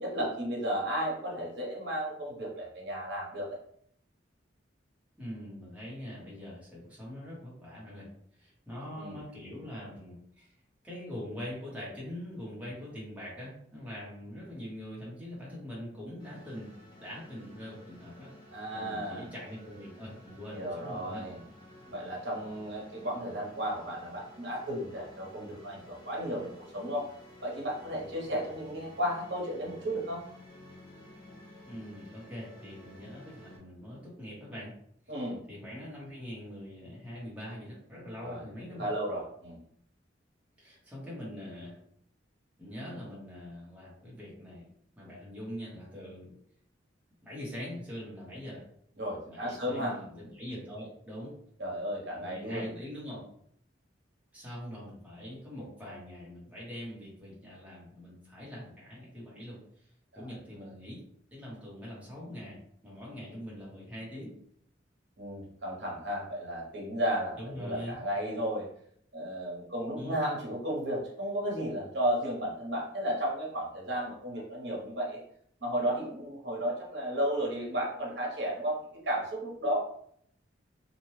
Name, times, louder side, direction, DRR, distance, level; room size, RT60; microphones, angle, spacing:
voice 1, 0.0-3.6 9.0-9.2 18.5-19.3 20.5-21.4 21.9-27.1 27.4-30.2 35.1-35.4 38.2-38.4 38.8-39.6 49.0-49.9 51.6-52.7 60.1-60.3 65.2-68.7 69.1-75.2 75.6-78.8 79.0-79.8, equal, 65° right, -3 dB, 0.9 m, -33 dB
voice 2, 5.2-8.1 8.4-10.5 10.8-16.7 17.0-21.2 31.7-34.8 35.5-38.9 40.6-41.8 42.6-46.3 47.2-48.6 49.2-51.3 52.1-53.2 54.3-59.6 60.1-61.0 61.3-64.3 67.4-68.0 70.0-70.4, equal, 10° right, -7 dB, 0.8 m, -43 dB
sound 1, 16.2-33.6, left 1 dB, 25° left, 0.9 m, -53 dB
2.7 x 2.1 x 3.1 m, 0.67 s
head